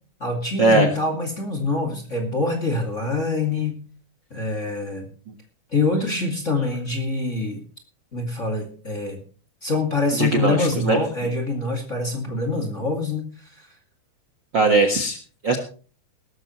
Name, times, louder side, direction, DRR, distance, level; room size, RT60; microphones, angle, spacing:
voice 1, 0.2-3.8 4.3-5.1 5.7-7.6 8.1-9.2 9.6-13.7, left 3 dB, 25° left, 2 dB, 1.7 m, -25 dB
voice 2, 10.2-11.0 14.5-15.2 15.4-15.6, right 3 dB, 85° right, 6 dB, 1.0 m, -19 dB
18.0 x 14.0 x 3.1 m, 0.39 s
omnidirectional pair, 4.9 m